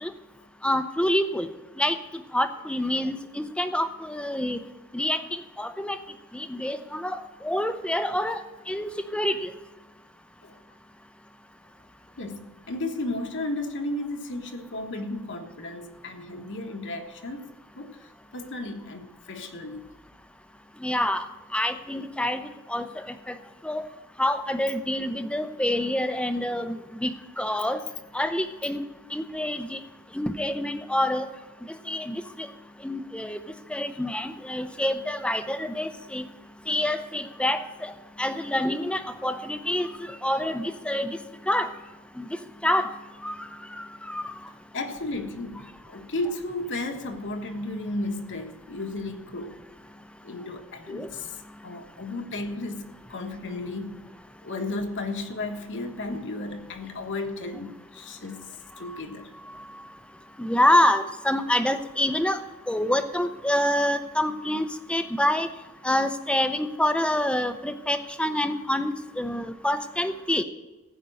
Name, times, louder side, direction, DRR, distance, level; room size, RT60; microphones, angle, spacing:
voice 1, 0.6-1.5 1.8-4.6 4.9-5.2 5.6-6.0 6.3-7.2 7.4-8.4 8.7-9.5 20.8-21.2 21.5-22.4 22.7-23.3 23.6-23.9 24.2-27.8 28.1-28.8 29.1-29.8 30.1-31.3 31.7-32.5 32.8-33.4 33.7-36.2 36.7-37.9 38.2-39.9 40.2-41.2 41.5-41.7 42.2-42.9 43.2-43.3 43.8-44.2 50.9-51.1 60.4-62.4 62.7-65.5 65.8-70.4, left 1 dB, 5° left, 0.7 m, -27 dB
voice 2, 12.2-17.5 17.7-19.8 44.7-49.6 50.2-54.0 54.4-58.4 58.8-59.3, left 2 dB, 55° left, 1.3 m, -34 dB
15.5 x 5.2 x 9.0 m
head